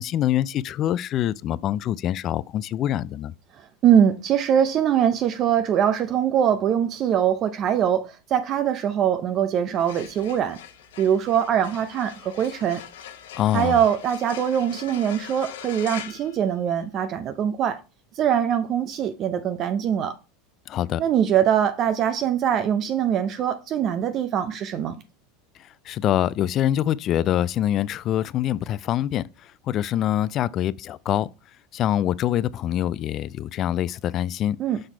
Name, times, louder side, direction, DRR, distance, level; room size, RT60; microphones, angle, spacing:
voice 1, 0.0-3.3 13.4-13.8 20.7-21.0 25.9-29.3 29.7-31.3 31.7-34.6, left 11 dB, 40° left, 0.3 m, -24 dB
voice 2, 3.8-10.6 11.0-12.8 13.5-17.8 18.2-20.1 21.0-25.0 34.6-34.8, right 9 dB, 40° right, 0.5 m, -22 dB
sound 1, 9.6-17.1, left 9 dB, 85° left, 0.8 m, -42 dB
6.4 x 4.0 x 4.5 m
supercardioid pair, 115°, 0 cm